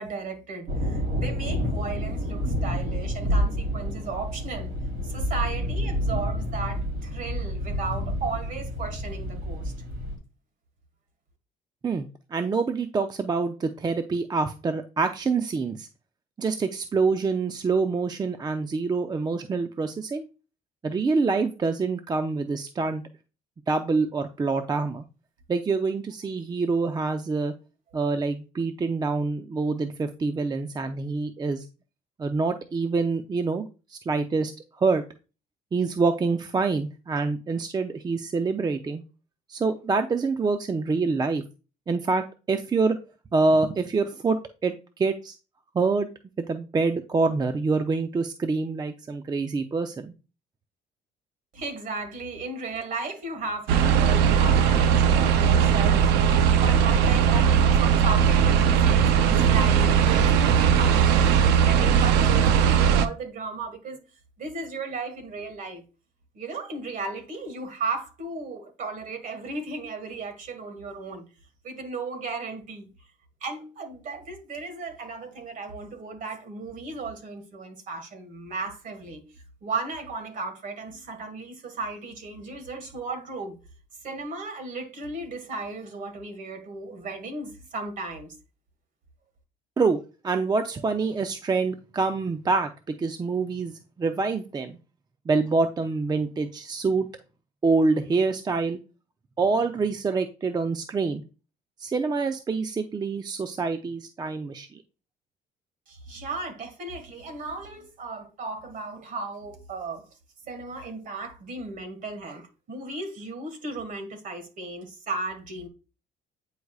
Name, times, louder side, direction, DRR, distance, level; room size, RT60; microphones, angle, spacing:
voice 1, 0.0-4.7 5.0-9.7 51.5-64.0 64.4-65.8 66.3-71.2 71.6-72.9 73.4-83.6 84.0-88.3 105.9-110.1 110.4-115.7, right 3 dB, 50° right, 1.7 m, -35 dB
sound 1, 0.7-10.2, equal, 70° right, 3.5 m, -29 dB
voice 2, 11.8-15.9 16.4-20.3 20.8-23.0 23.7-25.0 25.5-27.5 27.9-31.6 32.2-34.5 34.8-35.0 35.7-39.0 39.5-41.4 41.9-43.0 43.3-45.4 45.7-46.1 46.4-50.1 89.8-90.0 90.2-93.7 94.0-94.8 95.3-97.1 97.6-98.8 99.4-101.2 101.8-104.8, right 4 dB, 25° right, 0.5 m, -26 dB
sound 2, 53.7-63.1, right 8 dB, 90° right, 0.6 m, -19 dB
9.2 x 4.8 x 2.4 m
cardioid pair, 110°, 17 cm